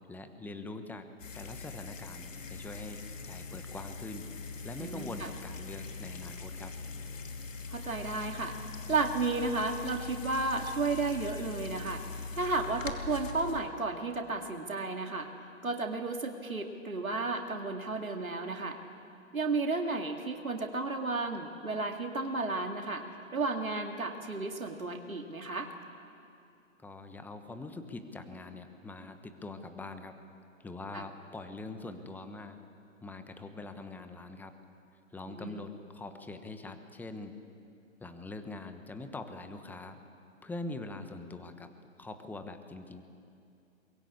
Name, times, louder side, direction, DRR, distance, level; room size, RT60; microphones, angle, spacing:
voice 1, 0.1-1.1 1.3-4.3 4.6-6.7 26.8-30.2 30.6-32.6 33.0-34.5 35.1-37.4 38.0-40.0 40.4-41.7 42.0-43.0, left 2 dB, 5° left, 8 dB, 1.1 m, -43 dB
sound 1, 1.2-13.6, left 4 dB, 70° left, 2.7 m, -42 dB
sound 2, 2.3-9.4, left 7 dB, 50° left, 4.8 m, -55 dB
voice 2, 4.8-5.3 7.7-8.5 8.9-12.0 12.3-15.3 15.6-18.8 19.3-23.1 23.3-25.7 30.9-31.0 35.3-35.6, right 3 dB, 90° right, 4 dB, 2.2 m, -33 dB
23.0 x 21.0 x 8.6 m, 2.5 s
figure-of-eight pair, 130°, 40 cm